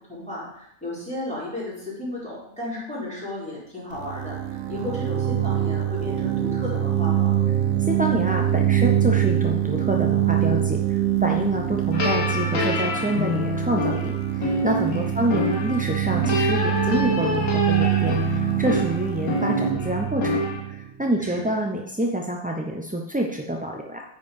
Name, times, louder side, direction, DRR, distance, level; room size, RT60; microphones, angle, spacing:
voice 1, 0.1-7.4 14.9-15.1 21.2-21.5, left 2 dB, 5° left, -8 dB, 4.3 m, -34 dB
sound 1, 3.9-21.5, right 12 dB, 80° right, 1.2 m, -24 dB
voice 2, 7.8-20.4 20.7-24.0, right 1 dB, 10° right, 1 dB, 0.4 m, -27 dB
sound 2, 11.9-20.6, left 2 dB, 70° left, 1.8 m, -27 dB
9.6 x 5.3 x 5.3 m, 0.74 s
omnidirectional pair, 1.4 m